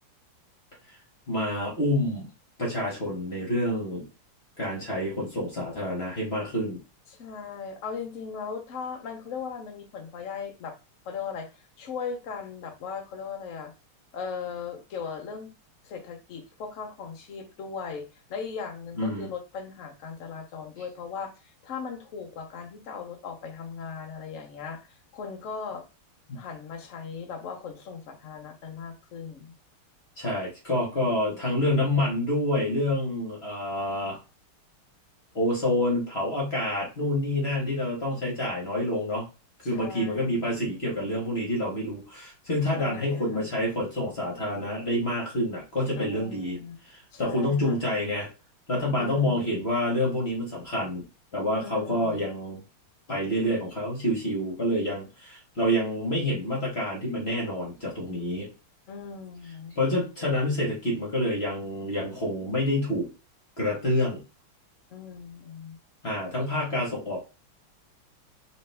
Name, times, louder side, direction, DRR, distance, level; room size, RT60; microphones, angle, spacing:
voice 1, 1.3-2.3 2.6-4.1 4.6-6.8 19.0-19.3 26.3-26.4 30.2-34.2 35.3-39.2 39.6-46.6 46.8-48.3 48.7-51.1 51.3-52.6 53.1-58.5 59.7-63.1 63.6-64.2 66.0-67.2, left 1 dB, 40° left, -2 dB, 1.0 m, -28 dB
voice 2, 7.1-10.8 11.0-13.7 14.1-15.5 15.8-18.0 18.3-21.3 21.6-25.8 26.3-29.5 30.9-31.4 39.6-40.5 42.7-43.5 45.9-46.8 47.1-47.8 48.9-49.7 51.5-52.3 58.9-59.8 64.9-65.8, left 6 dB, 60° left, 4 dB, 0.8 m, -38 dB
3.9 x 3.0 x 3.3 m, 0.30 s
omnidirectional pair, 2.4 m